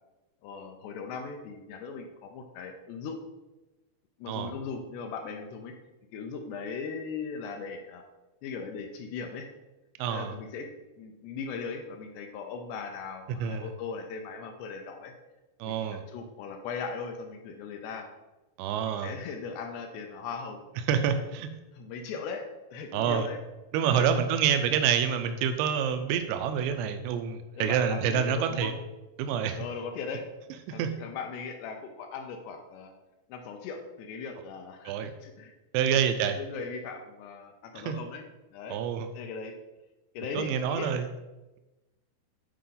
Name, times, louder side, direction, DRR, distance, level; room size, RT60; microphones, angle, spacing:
voice 1, 0.4-3.2 4.2-5.7 6.1-8.0 8.4-9.5 10.1-10.7 11.0-15.1 15.6-18.1 18.7-20.6 21.7-22.4 22.7-23.4 23.8-24.1 27.6-28.8 29.6-30.3 30.7-32.9 33.3-35.5 35.9-36.0 36.4-38.2 38.5-38.8 39.1-39.6 40.1-40.9, left 5 dB, 80° left, 4 dB, 2.6 m, -38 dB
voice 2, 10.0-10.3 13.4-13.7 15.6-16.0 18.6-19.1 20.9-21.5 22.9-23.3 23.7-28.7 29.2-29.6 30.8-30.9 34.9-35.1 35.7-36.4 37.8-38.0 38.7-39.1 40.3-41.0, right 8 dB, 85° right, 7 dB, 2.7 m, -27 dB
8.3 x 4.7 x 3.8 m, 1.1 s
omnidirectional pair, 5.0 m